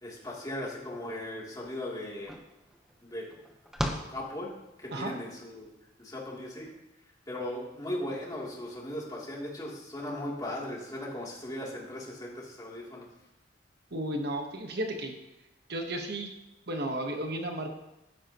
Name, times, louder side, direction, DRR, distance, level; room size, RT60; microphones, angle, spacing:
voice 1, 0.0-2.3 3.0-3.3 4.1-4.5 4.8-5.7 6.0-6.7 7.3-13.1, left 1 dB, 20° left, -4 dB, 3.1 m, -38 dB
sound 1, 1.6-1.7 2.0-5.0, equal, 5° right, 1.0 m, -38 dB
voice 2, 13.9-15.1 15.7-16.3 16.7-17.7, right 1 dB, 55° right, 3 dB, 1.3 m, -33 dB
15.5 x 12.0 x 3.1 m, 0.93 s
head